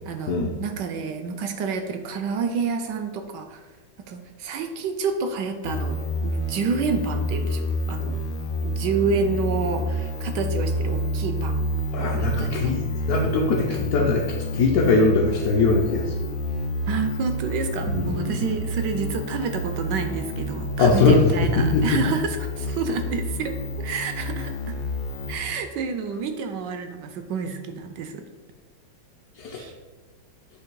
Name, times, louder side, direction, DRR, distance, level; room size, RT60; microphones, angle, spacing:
voice 1, 0.0-3.6 4.0-8.2 8.6-11.7 12.2-12.7 13.7-13.8 16.9-24.8 25.3-28.2 29.5-29.7, right 5 dB, 75° right, 7 dB, 1.0 m, -29 dB
sound 1, 5.6-25.4, left 1 dB, 80° left, 1.5 m, -29 dB
voice 2, 11.9-14.3 14.5-16.0 17.8-18.4 20.8-21.3 21.6-22.0 29.4-29.6, left 3 dB, 65° left, -3 dB, 1.0 m, -21 dB
8.4 x 2.8 x 4.6 m, 1.3 s
omnidirectional pair, 2.2 m